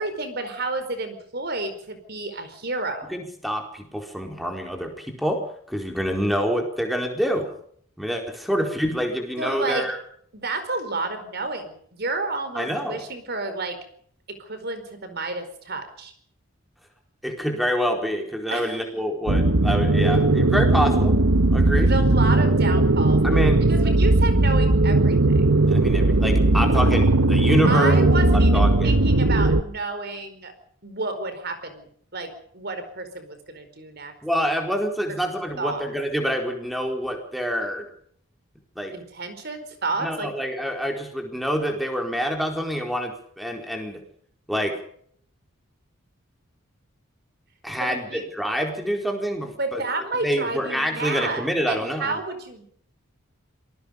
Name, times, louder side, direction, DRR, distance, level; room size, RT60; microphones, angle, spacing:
voice 1, 0.0-3.1 9.4-9.8 10.3-13.8 14.4-16.1 18.5-18.8 21.8-23.2 23.7-25.6 27.6-30.5 30.8-34.1 34.4-34.6 35.6-35.8 38.9-40.3 47.8-48.3 49.6-52.6, right 3 dB, 50° right, 9 dB, 4.8 m, -30 dB
voice 2, 3.1-5.4 5.7-7.5 8.0-10.0 12.5-13.0 17.2-21.3 21.5-21.9 23.2-23.6 25.7-27.9 28.3-29.0 34.2-37.9 38.8-38.9 40.0-44.0 44.5-44.8 47.6-49.8 50.2-52.2, equal, ahead, 3 dB, 4.5 m, -26 dB
sound 1, 19.3-29.6, right 2 dB, 85° right, 1.3 m, -18 dB
26.5 x 20.5 x 5.3 m, 0.62 s
head